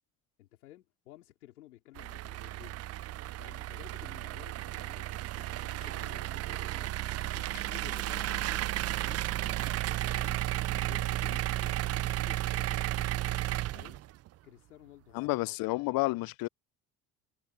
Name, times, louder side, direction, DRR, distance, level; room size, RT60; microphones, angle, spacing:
voice 1, 0.4-2.8 3.4-5.1 5.4-10.4 10.7-13.1 13.7-14.0 14.4-15.3, left 15 dB, 90° left, 4.1 m, -54 dB
sound 1, 2.0-14.3, right 15 dB, 35° right, 0.4 m, -33 dB
voice 2, 15.1-16.5, left 22 dB, 50° left, 0.5 m, -30 dB
hypercardioid pair, 70°, 43 cm